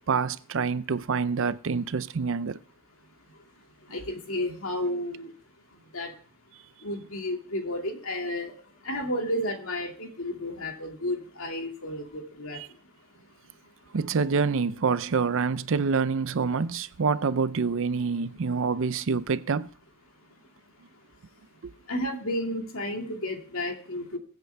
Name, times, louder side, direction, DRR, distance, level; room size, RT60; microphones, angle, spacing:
voice 1, 0.1-2.6 12.5-12.7 13.9-19.7 21.6-21.7, right 5 dB, 60° right, 0.5 m, -26 dB
voice 2, 3.9-5.3 5.9-6.1 6.8-8.5 8.8-12.6 21.9-24.2, left 1 dB, 70° left, 2.5 m, -32 dB
21.5 x 8.2 x 3.4 m
head